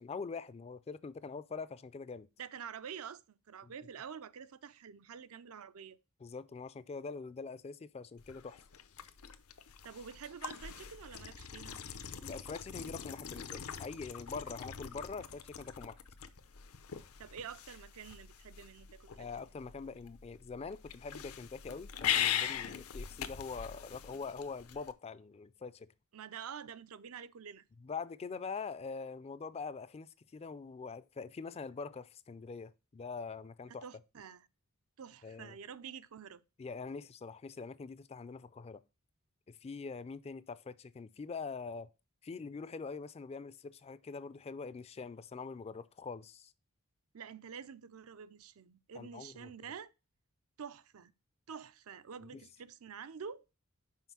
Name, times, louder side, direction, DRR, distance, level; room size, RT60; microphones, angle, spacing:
voice 1, 0.0-2.3 3.6-3.7 6.2-8.6 12.2-16.0 19.2-25.9 27.8-33.8 35.2-35.6 36.6-38.8 39.5-41.9 42.2-46.5 49.0-49.5 52.3-52.4, left 4 dB, 30° left, 0.4 m, -44 dB
voice 2, 2.4-6.0 9.8-11.8 17.2-19.3 26.1-27.6 33.7-34.5 35.0-36.4 47.1-49.9 50.6-51.1 51.5-53.4, right 7 dB, 75° right, 0.5 m, -48 dB
sound 1, 8.2-24.9, left 9 dB, 80° left, 0.7 m, -41 dB
5.7 x 4.8 x 6.0 m
head